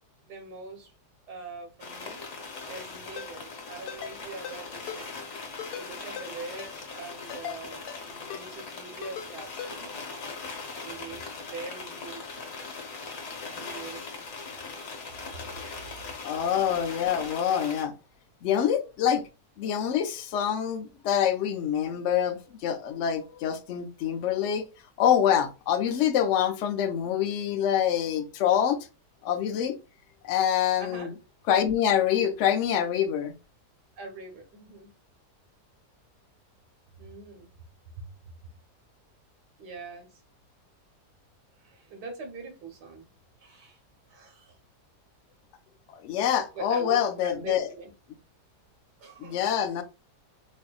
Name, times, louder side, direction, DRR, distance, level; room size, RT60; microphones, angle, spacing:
voice 1, 0.3-0.9 1.3-2.2 2.7-5.2 5.7-10.0 10.8-12.5 13.5-14.3 15.3-15.4 30.8-31.2 34.0-34.9 37.0-37.5 38.0-38.1 39.6-40.2 41.6-43.1 43.4-43.8 44.1-44.6 46.5-47.9 49.0-49.5, right 4 dB, 85° right, 1.6 m, -43 dB
sound 1, 1.8-17.8, left 4 dB, 45° left, 1.1 m, -40 dB
Ringtone, 3.2-3.3 3.9-4.1 4.4-4.6 4.9-5.0 5.6-5.9 6.2-6.3 6.6-6.7 7.3-7.6 7.9-8.0 8.3-8.4 9.0-9.3 9.6-9.7, left 8 dB, 90° left, 1.3 m, -38 dB
voice 2, 16.2-17.9 18.4-19.2 19.6-24.6 25.0-28.8 29.2-29.8 30.2-31.1 31.5-33.3 45.9-47.7 49.2-49.8, left 9 dB, 65° left, 0.7 m, -26 dB
4.3 x 2.6 x 2.3 m
omnidirectional pair, 1.7 m